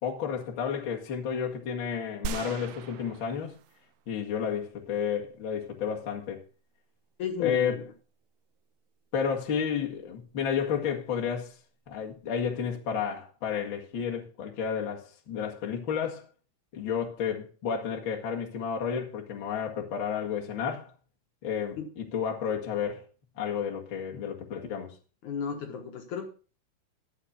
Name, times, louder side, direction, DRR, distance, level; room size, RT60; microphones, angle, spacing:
voice 1, 0.0-3.5 4.1-6.4 7.4-7.7 9.1-11.5 11.9-16.3 16.7-20.9 21.4-23.1 23.4-24.9, left 7 dB, 40° left, 2.2 m, -31 dB
sound 1, 2.2-4.0 4.5-4.6, right 7 dB, 75° right, 1.7 m, -39 dB
voice 2, 7.2-7.8 21.8-21.9 25.2-26.3, left 7 dB, 70° left, 2.6 m, -34 dB
12.0 x 7.3 x 5.5 m
omnidirectional pair, 3.9 m